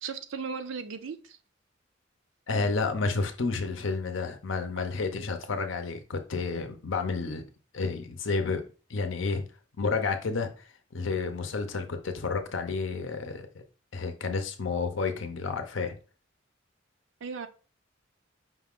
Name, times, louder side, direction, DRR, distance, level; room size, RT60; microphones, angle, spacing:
voice 1, 0.0-1.4 17.2-17.5, right 5 dB, 70° right, 0.5 m, -36 dB
voice 2, 2.5-7.4 7.7-8.6 8.9-9.4 9.8-10.5 10.9-13.5 13.9-15.9, left 4 dB, 70° left, 0.6 m, -30 dB
5.2 x 2.4 x 3.6 m
head